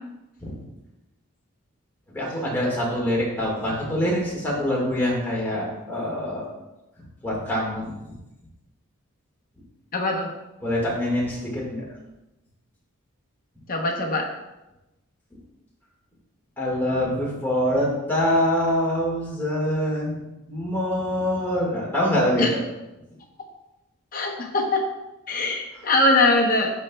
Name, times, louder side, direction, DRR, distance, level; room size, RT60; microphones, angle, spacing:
voice 1, 2.1-6.5 7.2-7.9 10.6-11.8 16.6-20.2 20.5-22.6, left 1 dB, 10° left, -5 dB, 1.8 m, -24 dB
voice 2, 9.9-10.3 13.7-14.3 22.4-22.5 24.1-24.8 25.3-26.7, left 2 dB, 40° left, 0 dB, 0.9 m, -22 dB
11.5 x 4.3 x 2.3 m, 0.98 s
head